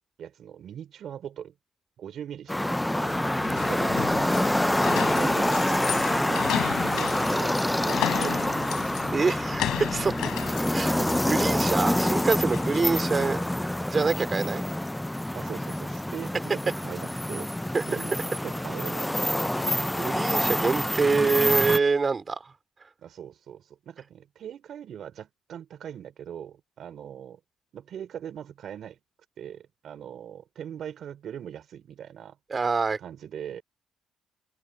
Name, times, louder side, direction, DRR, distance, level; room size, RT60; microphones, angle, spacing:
voice 1, 0.2-1.5 2.0-4.4 4.9-6.5 6.7-7.5 7.8-8.6 10.8-11.2 12.6-12.8 15.3-19.1 23.0-27.4 27.7-29.0 29.4-32.4 33.0-33.6, right 9 dB, 55° right, 4.6 m, -40 dB
sound 1, 2.5-21.8, left 1 dB, 5° left, 0.3 m, -26 dB
sound 2, 3.1-13.5, left 13 dB, 90° left, 3.6 m, -35 dB
voice 2, 9.1-10.1 10.7-10.9 11.3-13.4 13.9-14.6 17.7-17.8 20.0-22.5 32.5-33.0, right 4 dB, 25° right, 3.0 m, -25 dB
open air
cardioid pair, 145°, 0 cm